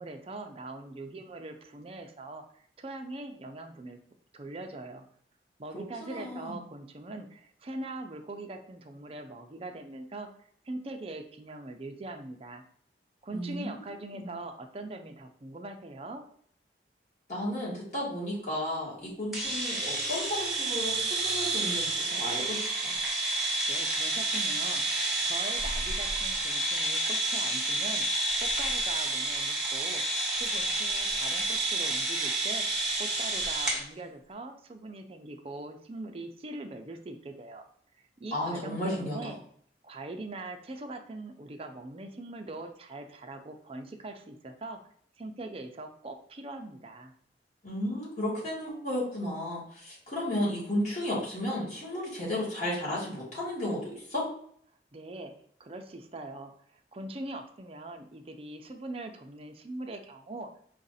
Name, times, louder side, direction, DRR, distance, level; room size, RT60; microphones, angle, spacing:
voice 1, 0.0-4.0 4.3-5.1 5.6-10.3 10.7-12.6 13.2-16.2 23.7-28.1 28.4-30.0 30.3-32.6 33.0-37.7 38.2-39.4 39.8-44.8 45.2-47.1 54.9-55.3 55.6-60.5, right 2 dB, 35° right, 5 dB, 0.5 m, -42 dB
voice 2, 5.7-6.6 13.3-13.9 14.1-14.4 17.3-22.9 38.3-39.3 47.6-54.3, left 1 dB, 45° left, -6 dB, 1.9 m, -33 dB
sound 1, 19.3-33.8, right 2 dB, ahead, 1.0 m, -30 dB
4.9 x 2.5 x 4.0 m, 0.63 s
head